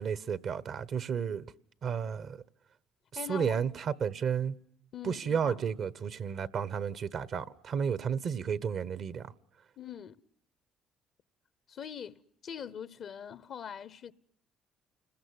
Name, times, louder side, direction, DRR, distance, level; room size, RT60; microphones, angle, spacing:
voice 1, 0.0-1.5 1.8-2.4 3.3-4.6 5.0-9.3, right 7 dB, 60° right, 1.2 m, -32 dB
voice 2, 3.1-3.6 4.9-5.6 9.8-10.2 11.7-14.1, left 8 dB, 60° left, 1.0 m, -42 dB
29.5 x 20.5 x 9.7 m
hypercardioid pair, 55°, 0 cm